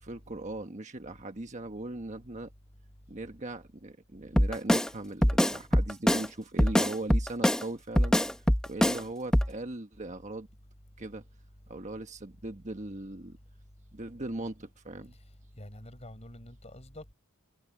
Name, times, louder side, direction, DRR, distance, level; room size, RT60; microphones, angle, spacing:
voice 1, 0.0-2.5 3.1-8.3 8.7-10.5 11.0-11.2 11.7-13.4 13.9-15.2, right 2 dB, 35° right, 1.3 m, -39 dB
Drum kit, 4.4-4.9 5.2-6.3 6.6-7.6 8.0-9.0 9.3-9.5, equal, 5° left, 0.6 m, -23 dB
voice 2, 15.1-17.1, left 1 dB, 30° left, 6.0 m, -47 dB
head